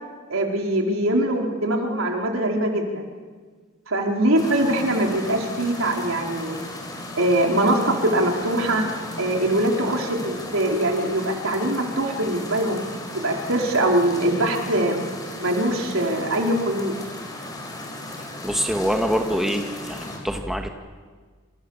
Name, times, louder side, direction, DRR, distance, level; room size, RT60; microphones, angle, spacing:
voice 1, 0.3-3.1 3.9-6.7 7.2-8.8 9.2-12.8 13.1-15.0 15.4-16.9, right 1 dB, 70° right, 1 dB, 4.5 m, -22 dB
sound 1, 4.4-20.2, left 1 dB, 20° left, 5.3 m, -36 dB
voice 2, 18.4-20.7, equal, ahead, 3 dB, 1.8 m, -25 dB
28.5 x 27.5 x 7.4 m, 1.5 s
head